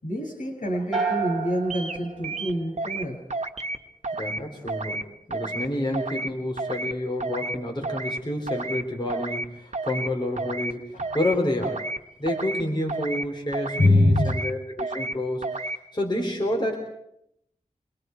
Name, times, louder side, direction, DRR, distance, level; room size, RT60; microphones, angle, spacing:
voice 1, 0.0-3.2 10.9-11.1 13.8-14.4, left 1 dB, 80° left, 1 dB, 6.7 m, -24 dB
sound 1, 0.9-3.2, right 5 dB, 5° left, 7.7 m, -31 dB
sound 2, 1.7-2.0 2.2-3.0 3.3-3.8 4.0-4.4 4.7-5.0 5.3-5.7 5.9-6.3 6.6-6.9 7.2-7.6 7.8-8.2 8.5-8.8 9.1-9.5 9.7-10.1 10.4-10.7 11.0-11.4 11.6-12.0 12.3-12.6 12.9-13.3 13.5-13.9 14.2-14.5 14.8-15.1 15.4-15.8, right 2 dB, 60° right, 1.4 m, -31 dB
voice 2, 4.1-11.8 12.2-16.8, left 1 dB, 35° left, 0 dB, 4.1 m, -29 dB
27.0 x 21.5 x 4.7 m, 0.76 s
wide cardioid pair, 70°, 13 cm